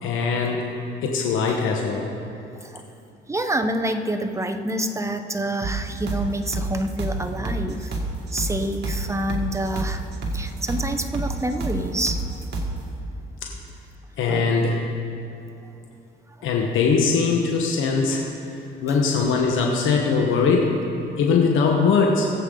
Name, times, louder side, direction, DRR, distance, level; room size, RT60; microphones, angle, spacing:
voice 1, 0.0-0.7 1.0-2.1 14.2-14.8 16.4-18.2 18.8-20.7 21.2-22.3, left 5 dB, 85° left, 0 dB, 1.2 m, -21 dB
voice 2, 3.3-7.9 8.3-10.0 10.3-12.2 14.3-14.6, right 1 dB, 15° right, 7 dB, 0.8 m, -27 dB
sound 1, 5.6-12.8, right 2 dB, 60° right, 2.0 m, -29 dB
19.5 x 8.2 x 3.9 m, 2.8 s
cardioid pair, 90°, 20 cm